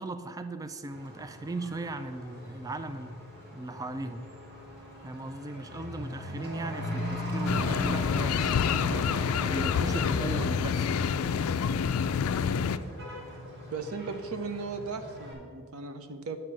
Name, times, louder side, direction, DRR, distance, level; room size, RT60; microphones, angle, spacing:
voice 1, 0.0-3.3 3.5-4.3 5.0-8.6 8.9-10.9, right 2 dB, 15° right, 10 dB, 0.3 m, -38 dB
Truck / Accelerating revving vroom, 0.9-15.3, equal, 50° right, 2.1 m, -39 dB
sound 1, 7.5-12.8, left 7 dB, 80° left, 0.4 m, -27 dB
voice 2, 13.7-16.4, right 4 dB, 85° right, 9 dB, 0.7 m, -36 dB
9.3 x 4.5 x 7.4 m, 2.1 s
head